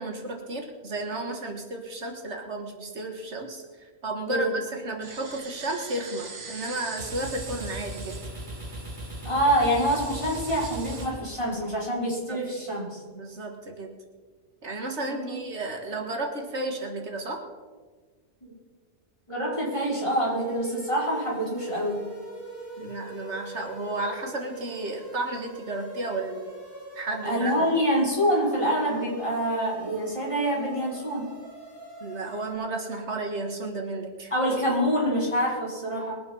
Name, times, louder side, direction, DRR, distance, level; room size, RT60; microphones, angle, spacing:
voice 1, 0.0-3.6 4.0-8.1 12.3-12.4 13.1-13.9 14.6-17.4 22.8-26.5 27.0-27.5 32.0-34.3, right 2 dB, 70° right, 3 dB, 1.9 m, -33 dB
sound 1, 5.0-11.1, right 4 dB, 85° right, 1.8 m, -43 dB
sound 2, 6.7-11.9, right 1 dB, 40° right, 2.1 m, -39 dB
voice 2, 9.2-13.0 15.0-15.3 18.4-18.5 19.3-22.0 27.2-31.3 34.3-36.1, equal, 25° left, -5 dB, 5.0 m, -26 dB
sound 3, 19.7-32.5, right 1 dB, 10° right, 5.3 m, -44 dB
21.5 x 8.9 x 5.4 m, 1.5 s
omnidirectional pair, 1.2 m